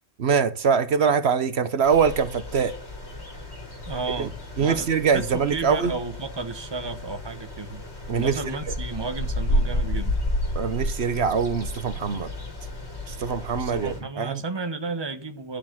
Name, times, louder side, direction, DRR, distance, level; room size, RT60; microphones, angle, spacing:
voice 1, 0.2-2.7 4.2-4.3 4.6-5.9 8.1-8.3 10.5-12.3 13.1-14.4, right 6 dB, 70° right, 1.2 m, -23 dB
sound 1, 1.8-14.0, left 1 dB, 80° left, 3.9 m, -31 dB
voice 2, 3.9-7.8 8.2-10.2 13.6-15.6, right 3 dB, 25° right, 1.2 m, -33 dB
12.0 x 6.8 x 7.4 m
omnidirectional pair, 1.1 m